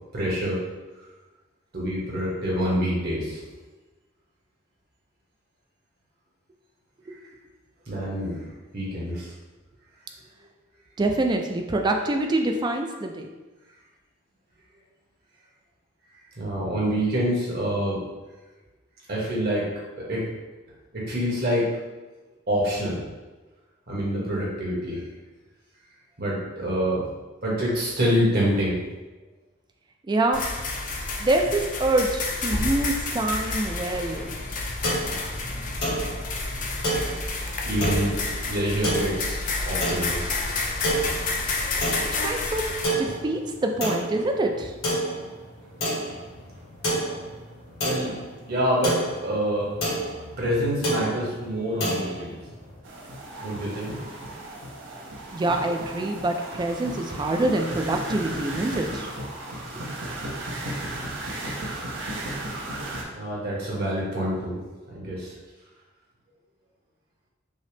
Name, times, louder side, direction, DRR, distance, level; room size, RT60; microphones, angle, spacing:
voice 1, 0.1-0.7 1.7-3.4 7.1-7.2 7.9-8.5 8.7-9.3 16.4-18.0 19.1-19.7 20.0-20.2 20.9-21.7 22.5-23.0 23.9-25.0 26.2-27.0 27.4-28.8 37.6-40.3 47.8-49.7 50.4-52.4 53.4-54.1 63.1-65.3, equal, 50° right, -5 dB, 1.3 m, -26 dB
voice 2, 11.0-13.3 30.1-30.4 31.2-34.3 42.2-42.6 43.0-44.7 55.3-59.1, right 2 dB, 20° right, 3 dB, 0.3 m, -25 dB
sound 1, 30.3-42.8, left 3 dB, 40° left, 0.5 m, -30 dB
sound 2, 34.1-52.8, right 1 dB, 85° left, 1.4 m, -31 dB
sound 3, 52.8-63.0, right 1 dB, 70° right, 0.7 m, -35 dB
5.3 x 2.0 x 3.3 m, 1.2 s
head